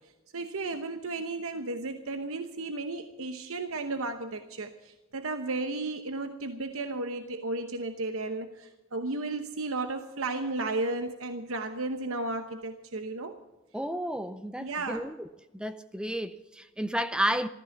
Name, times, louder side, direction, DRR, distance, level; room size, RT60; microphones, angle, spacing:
voice 1, 0.0-13.4 14.6-15.1, right 2 dB, 80° right, 0.9 m, -34 dB
voice 2, 13.7-15.1 15.5-17.5, equal, 5° right, 0.5 m, -31 dB
14.0 x 14.0 x 5.9 m
head